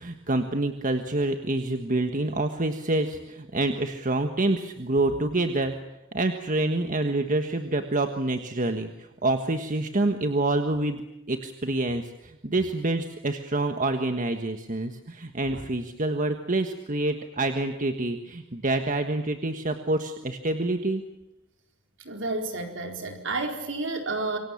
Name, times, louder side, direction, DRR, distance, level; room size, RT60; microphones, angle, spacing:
voice 1, 0.0-5.7 6.1-11.0 11.3-21.0, right 2 dB, 40° right, 6 dB, 1.5 m, -27 dB
voice 2, 22.0-24.4, right 2 dB, 65° right, 4 dB, 4.3 m, -31 dB
27.5 x 24.0 x 7.3 m, 0.90 s
head